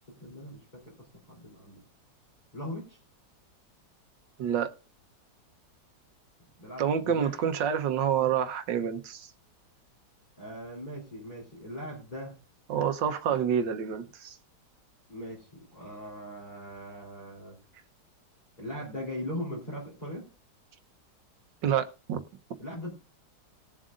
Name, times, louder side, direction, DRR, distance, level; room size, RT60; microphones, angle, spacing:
voice 1, 0.2-0.6 1.3-1.8 2.5-3.0 6.6-7.4 10.4-12.3 13.3-13.4 15.1-17.6 18.6-20.3 22.6-22.9, equal, 25° left, 3.4 m, -39 dB
voice 2, 4.4-4.7 6.8-9.3 12.7-14.4 21.6-22.2, right 8 dB, 90° right, 1.6 m, -28 dB
20.0 x 7.4 x 2.5 m
omnidirectional pair, 1.9 m